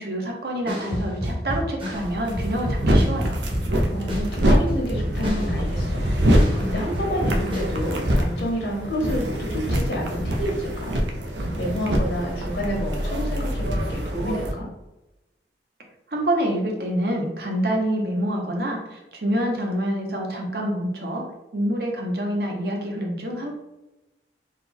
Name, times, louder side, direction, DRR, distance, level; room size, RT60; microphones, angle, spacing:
voice 1, 0.0-3.4 16.1-21.2 21.5-23.5, right 1 dB, 60° right, 1 dB, 0.8 m, -26 dB
sound 1, 0.7-6.7 6.9-8.3, equal, 30° right, 0.9 m, -29 dB
sound 2, 1.9-14.5, equal, 85° right, 0.6 m, -25 dB
voice 2, 3.9-10.9 11.6-14.7, equal, 75° left, -1 dB, 1.2 m, -29 dB
3.7 x 2.3 x 4.2 m, 0.98 s
head